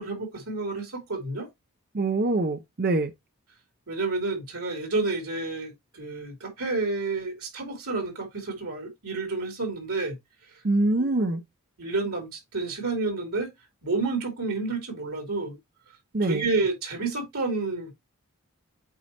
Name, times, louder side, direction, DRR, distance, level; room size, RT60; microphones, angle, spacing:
voice 1, 0.0-1.5 3.9-10.2 11.0-11.4 11.8-13.5 13.8-15.6 16.2-17.9, right 3 dB, 85° right, 2.8 m, -30 dB
voice 2, 1.9-3.1 10.6-11.4 16.1-16.5, right 2 dB, 45° right, 0.6 m, -24 dB
8.4 x 4.1 x 2.8 m
head